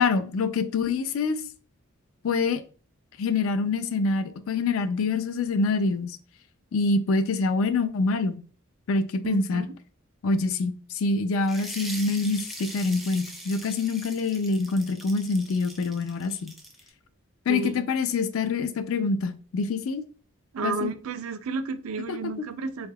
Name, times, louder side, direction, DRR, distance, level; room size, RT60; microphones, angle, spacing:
voice 1, 0.0-1.4 2.2-2.6 3.2-6.2 6.7-8.4 8.9-9.7 10.2-16.5 17.5-20.0 20.6-20.9 22.1-22.3, left 3 dB, 70° left, 0.4 m, -25 dB
voice 2, 9.2-9.7 17.5-17.8 20.5-22.9, right 4 dB, 75° right, 0.4 m, -32 dB
sound 1, 11.4-16.9, right 1 dB, ahead, 0.4 m, -41 dB
3.5 x 3.4 x 2.2 m
head